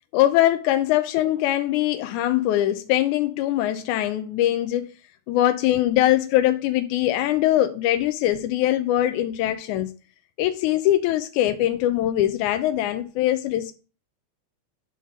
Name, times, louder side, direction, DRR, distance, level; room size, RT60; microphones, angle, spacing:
voice 1, 0.1-4.9 5.3-9.9 10.4-13.7, left 13 dB, 90° left, 2.0 m, -22 dB
9.1 x 3.9 x 6.4 m
omnidirectional pair, 3.4 m